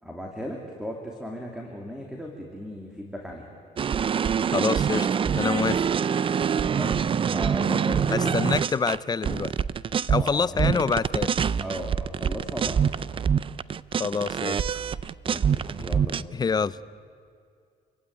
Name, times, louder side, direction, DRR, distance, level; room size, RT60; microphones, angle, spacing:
voice 1, 0.0-3.5 6.7-8.3 10.1-11.1 11.6-13.0 15.2-16.3, equal, 5° right, 1 dB, 2.9 m, -36 dB
sound 1, 3.8-10.3 10.6-16.2, right 7 dB, 30° right, 0.5 m, -25 dB
voice 2, 4.5-5.8 8.1-9.5 10.1-11.4 14.0-14.8 16.3-16.8, left 5 dB, 25° left, 17 dB, 0.6 m, -26 dB
29.5 x 15.5 x 9.5 m, 2.3 s
cardioid pair, 110°, 17 cm